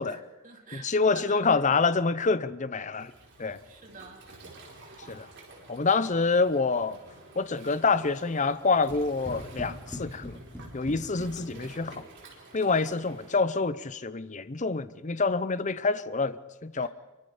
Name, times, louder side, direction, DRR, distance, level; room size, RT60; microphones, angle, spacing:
voice 1, 0.0-1.6 3.6-4.2 6.0-6.1 12.8-12.9 16.8-16.9, right 4 dB, 35° right, 2.9 m, -48 dB
voice 2, 0.7-3.1 3.4-3.6 5.1-5.3 5.7-7.0 7.4-10.4 10.7-12.1 12.5-16.9, left 4 dB, 35° left, 0.7 m, -27 dB
Waves surf, 3.0-13.4, right 2 dB, 55° right, 4.7 m, -51 dB
sound 1, 8.9-12.1, left 1 dB, 10° left, 3.9 m, -42 dB
24.5 x 23.5 x 5.0 m
head